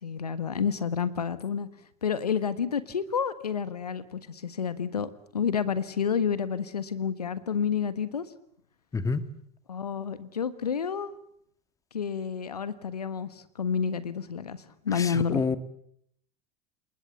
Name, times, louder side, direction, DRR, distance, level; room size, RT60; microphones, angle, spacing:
voice 1, 0.0-1.7 2.0-8.3 9.7-11.1 11.9-15.4, left 7 dB, 80° left, 15 dB, 1.4 m, -30 dB
voice 2, 8.9-9.2 15.3-15.6, left 4 dB, 15° left, 13 dB, 1.7 m, -26 dB
29.0 x 19.5 x 8.3 m, 0.69 s
figure-of-eight pair, 80°, 20 cm